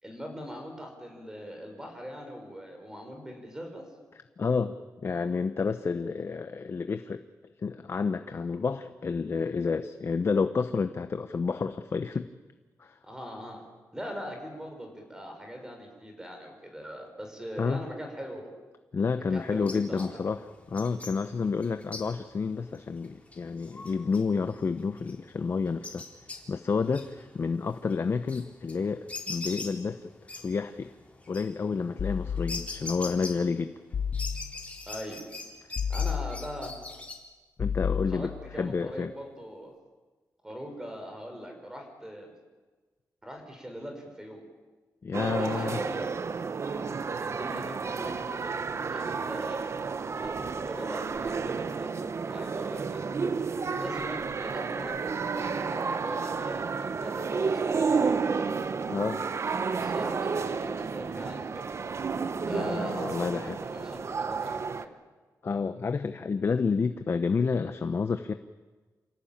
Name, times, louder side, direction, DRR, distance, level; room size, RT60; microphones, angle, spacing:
voice 1, 0.0-3.9 13.0-13.6 13.9-18.5 19.3-20.1 34.9-35.2 35.9-36.7 38.1-39.7 40.4-42.3 43.2-44.4 45.4-46.1 47.2-48.5 48.9-49.8 50.1-53.0 53.7-58.2 59.7-61.7 62.5-65.0, equal, 10° right, 3 dB, 5.7 m, -41 dB
voice 2, 4.4-4.7 5.0-7.2 7.6-12.3 12.8-13.0 17.6-17.8 18.9-26.0 26.5-30.9 31.3-33.7 37.6-38.3 38.6-39.1 45.0-45.8 58.9-59.2 62.5-63.6 65.4-68.3, left 5 dB, 40° left, 9 dB, 0.9 m, -30 dB
sound 1, 19.3-33.8 34.1-37.1, left 3 dB, 20° left, 3.9 m, -43 dB
sound 2, 32.0-33.0 33.9-34.8 35.7-36.8 37.6-38.7, left 7 dB, 65° left, 1.7 m, -32 dB
sound 3, 45.1-64.8, right 5 dB, 45° right, 1.0 m, -31 dB
28.0 x 17.5 x 8.8 m, 1.3 s
wide cardioid pair, 130°, 6 cm